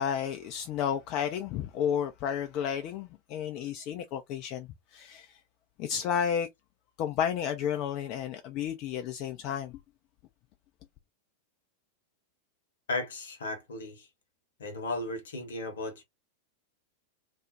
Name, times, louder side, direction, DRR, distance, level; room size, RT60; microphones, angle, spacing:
voice 1, 0.0-5.4 5.8-6.5 7.0-9.8, left 8 dB, 40° left, 0.3 m, -32 dB
voice 2, 12.9-14.1 14.6-16.0, left 2 dB, 65° left, 0.8 m, -35 dB
2.4 x 2.0 x 2.7 m
figure-of-eight pair, 90°, 0 cm